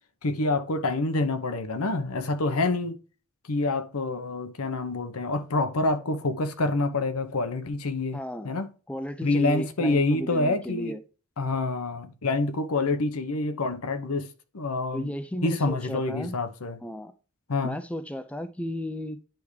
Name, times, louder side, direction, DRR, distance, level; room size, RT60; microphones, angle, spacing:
voice 1, 0.2-3.0 3.5-8.2 8.4-8.7 9.2-11.0 11.4-14.3 14.5-15.1 15.4-16.8 17.5-17.8, left 2 dB, 85° left, 0.9 m, -27 dB
voice 2, 8.1-8.5 8.9-11.0 14.9-16.4 16.8-17.1 17.6-19.2, equal, 5° left, 0.4 m, -34 dB
10.5 x 3.5 x 3.1 m
head